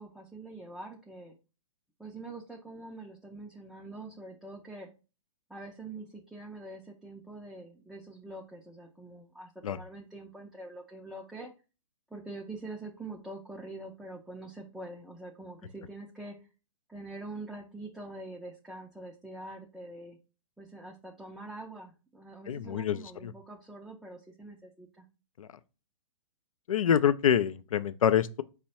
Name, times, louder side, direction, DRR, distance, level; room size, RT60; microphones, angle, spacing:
voice 1, 0.0-1.3 2.0-4.9 5.5-11.5 12.1-16.4 16.9-20.2 20.6-25.0, right 2 dB, ahead, 0.4 m, -44 dB
voice 2, 22.5-23.3 25.4-25.5 26.7-28.4, left 9 dB, 85° left, 0.4 m, -26 dB
4.6 x 2.1 x 4.1 m
hypercardioid pair, 130°, 17 cm